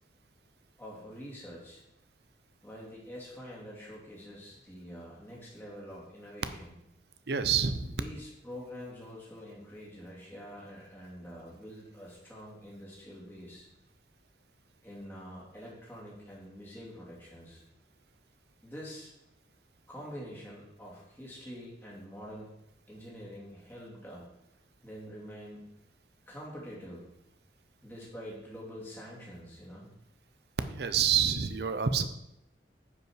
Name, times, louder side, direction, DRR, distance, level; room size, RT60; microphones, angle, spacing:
voice 1, 0.8-1.8 2.6-6.8 7.9-13.7 14.8-17.6 18.6-19.1 19.9-22.5 22.9-24.3 24.8-25.7 26.3-27.1 27.8-29.9, equal, 10° left, -5 dB, 2.6 m, -46 dB
voice 2, 7.3-7.9 30.7-32.1, right 7 dB, 65° right, 11 dB, 0.6 m, -27 dB
9.6 x 5.4 x 4.6 m, 0.85 s
head